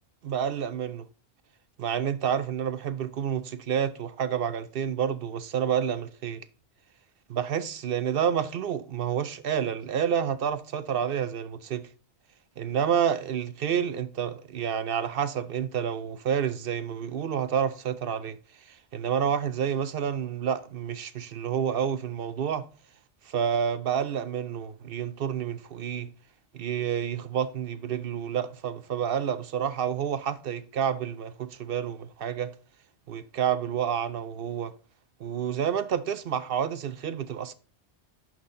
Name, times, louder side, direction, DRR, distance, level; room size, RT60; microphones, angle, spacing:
voice 1, 0.2-1.1 1.8-6.4 7.3-11.9 12.6-22.7 23.2-26.1 26.5-32.5 33.1-34.7 35.2-37.5, right 8 dB, 60° right, 0.8 m, -29 dB
11.0 x 4.2 x 3.7 m
omnidirectional pair, 1.1 m